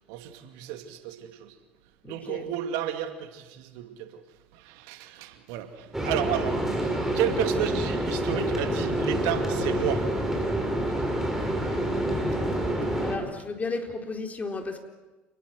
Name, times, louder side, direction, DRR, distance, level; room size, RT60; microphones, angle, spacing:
voice 1, 0.1-1.5 2.1-4.1 4.6-10.1, right 10 dB, 65° right, 8 dB, 2.3 m, -32 dB
voice 2, 2.0-2.4 13.0-14.8, left 3 dB, 25° left, 4 dB, 4.2 m, -33 dB
sound 1, 5.9-13.2, right 1 dB, 5° right, 7.1 m, -27 dB
28.5 x 20.5 x 7.8 m, 1.2 s
hypercardioid pair, 70°, 6 cm